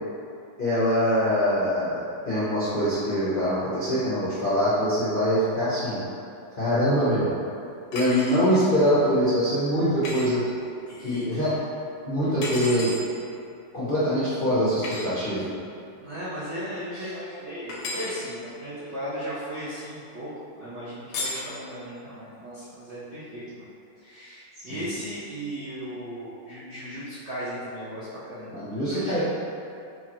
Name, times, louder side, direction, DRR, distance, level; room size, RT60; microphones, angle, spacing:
voice 1, 0.6-6.0 6.6-7.4 7.9-10.4 11.0-11.5 12.0-12.9 13.7-15.5 24.7-24.8 28.5-29.2, equal, 50° left, -13 dB, 0.6 m, -23 dB
sound 1, 7.9-8.4 10.0-10.3 12.4-13.0 14.8-15.1 17.7-18.2 21.1-21.5, left 2 dB, 65° left, 1.0 m, -33 dB
voice 2, 10.9-11.5 16.0-20.3 20.6-23.7 24.0-29.2, equal, 65° right, -11 dB, 0.6 m, -36 dB
4.6 x 2.4 x 2.9 m, 2.6 s
omnidirectional pair, 2.1 m